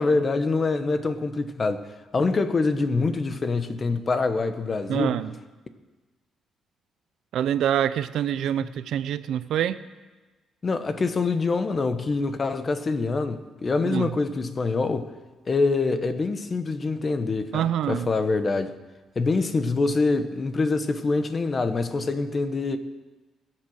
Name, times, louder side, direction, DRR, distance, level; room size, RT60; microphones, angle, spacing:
voice 1, 0.0-5.2 10.6-15.1 15.5-18.7 19.1-22.8, left 3 dB, 35° left, 1.2 m, -25 dB
voice 2, 4.9-5.3 7.3-9.8 13.8-14.2 17.5-18.1, right 10 dB, 75° right, 0.6 m, -25 dB
20.5 x 7.9 x 6.5 m
cardioid pair, 90°, 0 cm